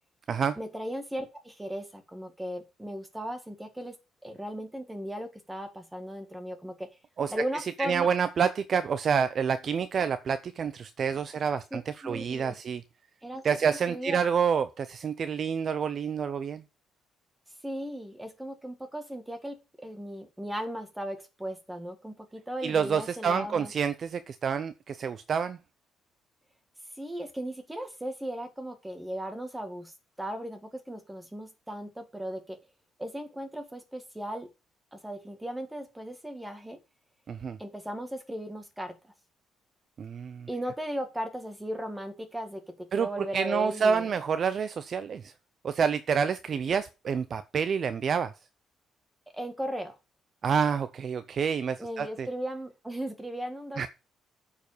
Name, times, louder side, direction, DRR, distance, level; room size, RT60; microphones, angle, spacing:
voice 1, 0.6-4.0 4.2-6.9 7.3-8.1 11.7-12.5 13.2-14.2 17.6-23.7 27.0-32.6 33.0-34.5 34.9-36.8 37.6-39.1 40.5-44.1 49.3-49.9 51.8-53.9, equal, 5° right, 1.7 m, -37 dB
voice 2, 7.8-12.8 13.4-16.6 22.6-25.6 37.3-37.6 40.0-40.5 42.9-45.3 45.6-48.3 50.4-52.3 53.8-53.9, right 6 dB, 40° right, 0.5 m, -28 dB
9.0 x 4.9 x 6.7 m
cardioid pair, 150°, 0 cm